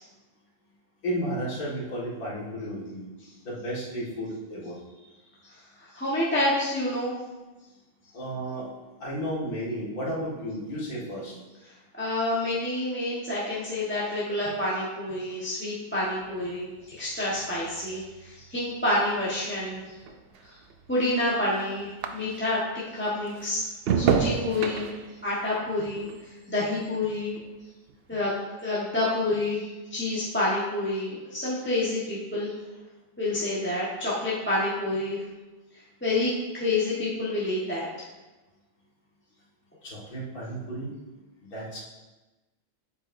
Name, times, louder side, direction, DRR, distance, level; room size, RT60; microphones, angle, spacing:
voice 1, 1.0-3.0 3.4-4.8 8.1-8.7 9.0-11.4 39.8-41.0 41.4-41.8, equal, 80° left, -5 dB, 2.3 m, -33 dB
voice 2, 5.8-7.1 11.9-16.7 17.0-19.8 20.4-20.6 20.9-22.6 22.9-23.6 23.9-24.9 25.2-27.4 28.1-29.6 29.9-32.5 33.2-35.2 36.0-37.9, left 2 dB, 10° left, -8 dB, 1.1 m, -28 dB
sound 1, 15.9-22.7 23.0-27.6 27.9-28.4, right 7 dB, 75° right, 0.5 m, -33 dB
7.9 x 7.2 x 2.6 m, 1.1 s
omnidirectional pair, 1.6 m